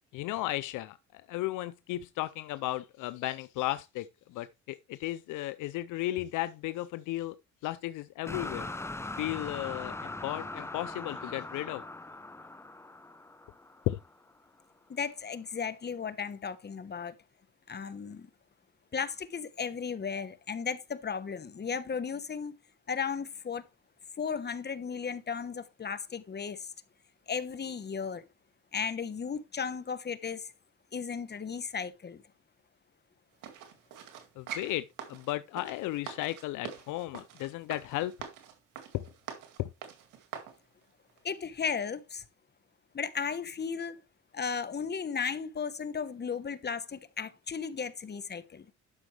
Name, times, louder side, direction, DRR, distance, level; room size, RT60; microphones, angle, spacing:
voice 1, 0.1-7.4 7.6-8.7 9.2-11.8 13.9-14.0 34.4-38.1 38.9-39.1 39.6-39.7, left 16 dB, 85° left, 0.5 m, -35 dB
sound 1, 8.2-14.3, left 2 dB, 10° left, 0.7 m, -41 dB
voice 2, 14.9-17.1 17.7-18.3 18.9-22.5 22.9-23.6 24.2-26.7 27.3-28.3 28.7-30.5 30.9-32.2 41.2-42.2 42.9-44.0 44.3-48.7, left 6 dB, 35° left, 1.1 m, -35 dB
sound 2, 33.4-40.6 41.1-41.2, right 8 dB, 90° right, 2.1 m, -45 dB
12.0 x 6.0 x 3.3 m
cardioid pair, 90°, 30 cm